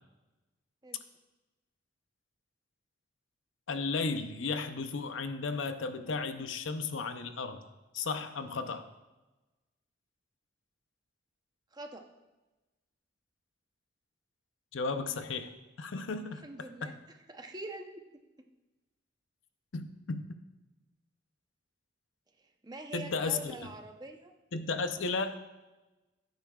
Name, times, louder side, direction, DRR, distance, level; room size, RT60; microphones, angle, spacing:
voice 1, 3.7-7.7 7.9-8.9 14.7-15.5 15.8-17.0 19.7-20.2 22.9-23.5 24.5-25.4, left 4 dB, 85° left, 9 dB, 0.6 m, -34 dB
voice 2, 11.7-12.0 16.4-16.9 17.3-18.0 22.6-24.3, right 2 dB, 20° right, 4 dB, 0.8 m, -44 dB
15.5 x 9.3 x 2.4 m, 1.1 s
head